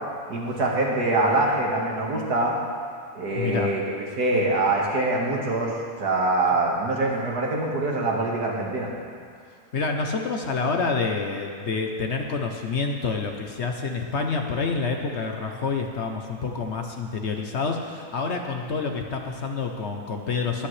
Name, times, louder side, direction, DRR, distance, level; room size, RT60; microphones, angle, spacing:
voice 1, 0.3-2.6 3.1-3.8 4.2-5.7 6.0-8.9, right 2 dB, 70° right, -2 dB, 2.2 m, -24 dB
voice 2, 3.4-3.7 9.7-20.7, left 4 dB, 50° left, 3 dB, 0.9 m, -28 dB
21.5 x 8.7 x 3.3 m, 2.2 s
omnidirectional pair, 1.7 m